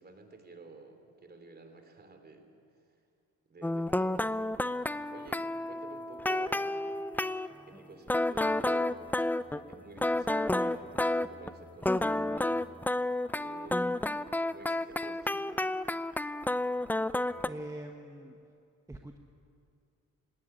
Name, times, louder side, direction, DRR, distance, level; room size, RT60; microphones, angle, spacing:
voice 1, 0.0-2.5 3.5-4.6 5.1-6.9 7.7-9.1 9.5-12.7 13.3-15.7, right 3 dB, 35° right, 6 dB, 3.3 m, -50 dB
sound 1, 3.6-7.5 8.1-11.5 11.8-17.5, left 1 dB, 5° left, 0.5 m, -30 dB
voice 2, 17.4-18.4 18.9-19.2, right 1 dB, 10° right, 3 dB, 1.2 m, -43 dB
18.5 x 17.0 x 9.8 m, 2.4 s
cardioid pair, 90°, 30 cm